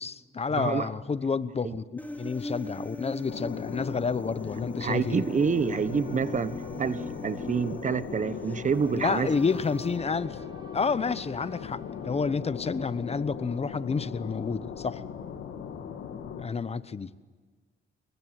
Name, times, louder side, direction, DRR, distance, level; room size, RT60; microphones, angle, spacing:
voice 1, 0.0-1.8 2.2-5.2 8.9-10.4 10.7-15.0 16.4-17.1, left 5 dB, 30° left, 1.0 m, -29 dB
voice 2, 0.6-0.9 1.6-1.7 4.8-9.3, right 6 dB, 40° right, 1.1 m, -28 dB
Human voice, 2.0-10.0, left 1 dB, 10° left, 4.2 m, -41 dB
sound 1, 3.2-16.4, left 7 dB, 75° left, 2.8 m, -39 dB
Boat Water vehicle / Alarm, 5.6-16.2, equal, 25° right, 4.7 m, -51 dB
25.0 x 22.5 x 10.0 m
cardioid pair, 90°, 20 cm